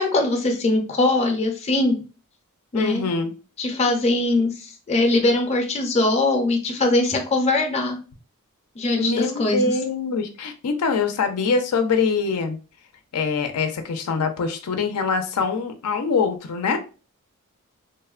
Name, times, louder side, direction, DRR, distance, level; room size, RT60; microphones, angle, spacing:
voice 1, 0.0-2.0 2.7-3.1 3.6-8.0 8.8-9.7, left 2 dB, 30° left, 3 dB, 0.5 m, -21 dB
voice 2, 2.7-3.3 9.0-12.6 13.1-16.8, left 4 dB, 85° left, 7 dB, 0.5 m, -24 dB
3.0 x 2.1 x 2.3 m, 0.33 s
head